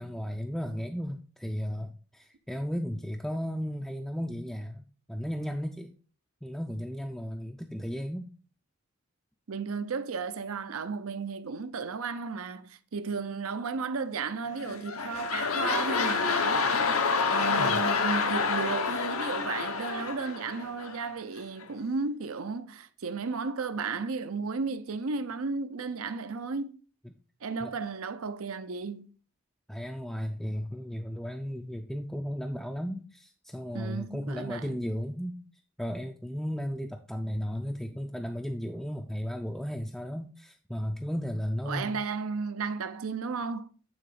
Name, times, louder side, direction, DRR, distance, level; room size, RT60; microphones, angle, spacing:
voice 1, 0.0-5.9 6.4-8.3 17.6-17.8 27.0-27.1 27.6-27.7 29.7-35.4 35.8-42.0, equal, ahead, 0.4 m, -35 dB
voice 2, 9.5-16.6 17.3-26.8 27.4-29.1 33.7-34.8 41.7-43.7, right 4 dB, 80° right, 0.6 m, -34 dB
sound 1, 14.5-21.1 21.6-21.7, left 5 dB, 85° left, 0.9 m, -28 dB
9.0 x 3.8 x 4.9 m
head